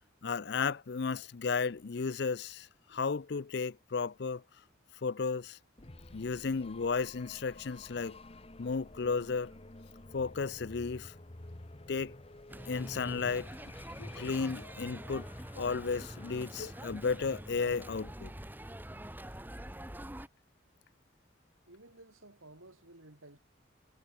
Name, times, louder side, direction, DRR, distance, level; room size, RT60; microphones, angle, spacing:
voice 1, 0.2-4.4 5.0-5.6 6.1-8.2 8.6-9.5 10.1-11.1 11.9-12.1 12.7-13.5 14.0-15.3 15.5-18.3, left 5 dB, 55° left, 0.5 m, -34 dB
sound 1, 5.8-18.5, left 2 dB, 30° left, 1.1 m, -52 dB
sound 2, 12.5-20.3, right 1 dB, 10° right, 2.6 m, -45 dB
voice 2, 21.7-23.4, right 2 dB, 90° right, 6.3 m, -55 dB
head